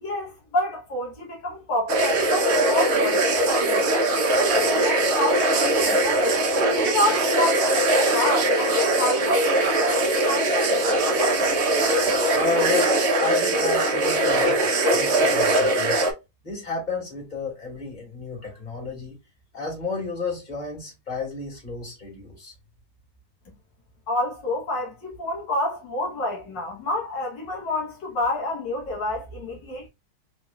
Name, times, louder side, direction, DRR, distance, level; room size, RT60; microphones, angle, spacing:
voice 1, 0.0-6.4 6.9-11.4 24.1-29.9, left 1 dB, 75° left, 1.7 m, -28 dB
sound 1, 1.9-16.1, right 2 dB, 50° right, 0.9 m, -21 dB
voice 2, 12.3-16.0 16.4-19.1 19.5-22.5, left 3 dB, 25° left, 2.1 m, -32 dB
4.2 x 3.1 x 2.3 m
omnidirectional pair, 2.0 m